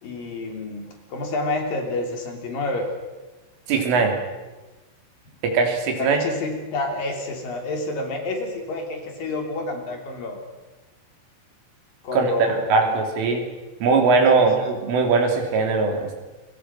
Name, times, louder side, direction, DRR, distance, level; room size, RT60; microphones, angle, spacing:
voice 1, 0.0-2.9 6.0-10.4 12.0-13.0 14.3-14.5, left 2 dB, 50° left, 3 dB, 4.5 m, -29 dB
voice 2, 3.7-4.2 5.4-6.2 12.1-12.3 12.7-13.4 13.8-16.2, right 4 dB, 90° right, 3 dB, 6.1 m, -20 dB
29.5 x 24.5 x 6.1 m, 1.2 s
omnidirectional pair, 5.5 m